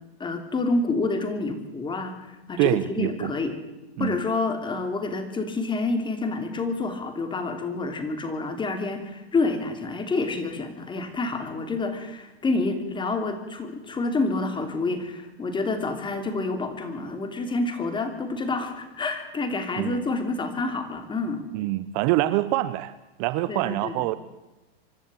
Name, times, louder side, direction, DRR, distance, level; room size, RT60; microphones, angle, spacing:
voice 1, 0.2-3.6 4.0-21.5 23.5-24.1, left 3 dB, 15° left, 7 dB, 3.1 m, -28 dB
voice 2, 2.6-3.3 4.0-4.2 19.8-20.0 21.5-22.9 23.2-24.1, right 17 dB, 45° right, 15 dB, 1.0 m, -25 dB
25.5 x 12.0 x 8.9 m, 0.97 s
hypercardioid pair, 130°, 31 cm